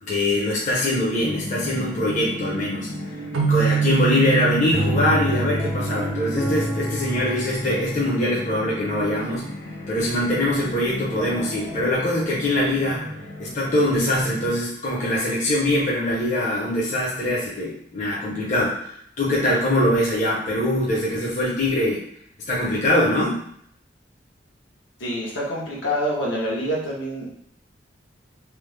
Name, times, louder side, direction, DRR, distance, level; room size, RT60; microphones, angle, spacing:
voice 1, 0.0-2.9 3.5-9.5 9.9-13.0 13.4-22.0 22.5-23.4, left 1 dB, 40° left, -6 dB, 0.6 m, -23 dB
sound 1, 1.2-14.6, left 1 dB, 60° left, 1.2 m, -35 dB
sound 2, 1.2-12.0, equal, 10° left, 0.3 m, -32 dB
sound 3, 3.3-6.9, right 6 dB, 85° right, 0.5 m, -25 dB
voice 2, 25.0-27.3, equal, 80° left, -4 dB, 1.0 m, -26 dB
3.3 x 2.0 x 3.2 m, 0.68 s
head